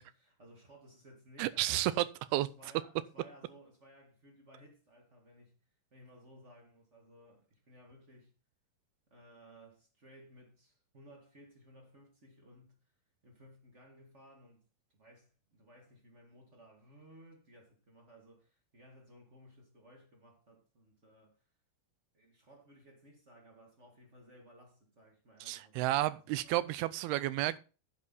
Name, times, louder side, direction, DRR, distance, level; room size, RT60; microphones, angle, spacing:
voice 1, 0.0-2.0 2.3-5.6 5.9-8.3 9.1-12.8 13.2-21.4 22.1-26.5, equal, 30° right, 1.3 m, -59 dB
voice 2, 1.4-2.1 2.3-2.5 25.4-27.6, right 15 dB, 90° right, 2.6 m, -31 dB
10.0 x 7.6 x 4.1 m
omnidirectional pair, 4.4 m